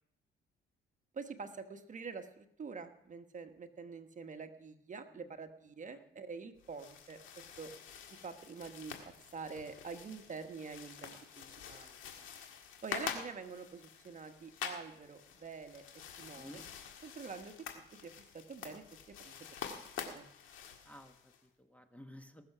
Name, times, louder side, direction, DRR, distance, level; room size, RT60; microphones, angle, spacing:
voice 1, 1.1-7.7 8.2-11.9 12.8-15.8 16.2-16.6 17.0-18.8 19.2-19.3 20.0-20.3, right 5 dB, 40° right, 7 dB, 1.2 m, -46 dB
sound 1, 6.6-21.4, left 7 dB, 90° left, 1.8 m, -47 dB
voice 2, 16.4-16.8 20.8-22.5, equal, 5° left, 7 dB, 1.1 m, -55 dB
20.0 x 6.7 x 6.0 m, 0.75 s
cardioid pair, 90°, 20 cm